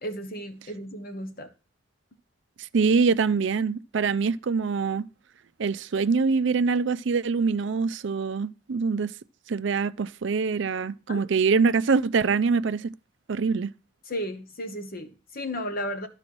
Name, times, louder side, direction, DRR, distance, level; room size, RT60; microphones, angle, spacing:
voice 1, 0.0-1.5 11.1-11.3 14.1-16.1, equal, 45° left, 1.1 m, -34 dB
voice 2, 2.7-5.1 5.6-9.1 9.5-12.9 13.3-13.7, right 5 dB, 60° right, 0.4 m, -24 dB
12.5 x 4.9 x 6.0 m
head